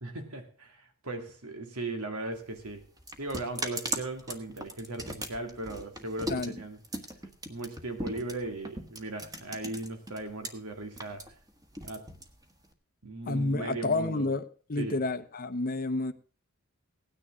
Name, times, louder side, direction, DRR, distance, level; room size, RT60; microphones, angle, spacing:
voice 1, 0.0-2.9 3.2-6.8 7.5-11.2 11.8-12.1 13.0-14.3 14.8-15.0, right 2 dB, 85° right, 2.5 m, -37 dB
sound 1, 2.3-10.5 10.8-12.7, right 1 dB, 15° right, 1.4 m, -39 dB
voice 2, 13.3-16.1, left 2 dB, 40° left, 0.8 m, -30 dB
17.0 x 9.9 x 3.7 m
head